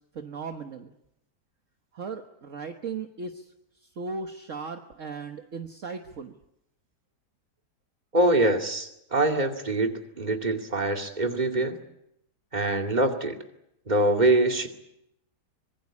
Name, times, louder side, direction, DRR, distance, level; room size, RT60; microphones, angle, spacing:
voice 1, 0.1-0.9 1.9-6.4, right 4 dB, 50° right, 5 dB, 1.6 m, -37 dB
voice 2, 8.1-11.8 12.5-13.4 13.9-14.7, right 2 dB, 25° right, 4 dB, 2.5 m, -24 dB
25.0 x 21.5 x 8.5 m, 0.81 s
omnidirectional pair, 1.8 m